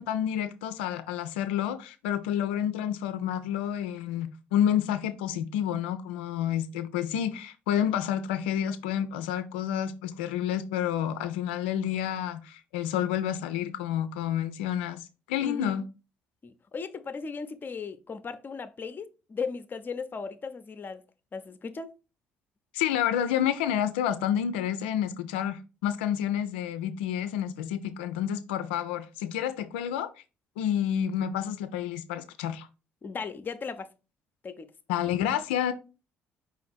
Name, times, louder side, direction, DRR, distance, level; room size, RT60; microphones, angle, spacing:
voice 1, 0.0-15.8 22.7-30.1 30.6-32.7 34.9-35.7, left 10 dB, 80° left, 0.4 m, -29 dB
voice 2, 15.4-15.8 16.4-21.0 21.3-21.9 33.0-33.9 34.4-34.7, left 5 dB, 35° left, 0.6 m, -37 dB
5.0 x 2.5 x 4.1 m
hypercardioid pair, 55°, 6 cm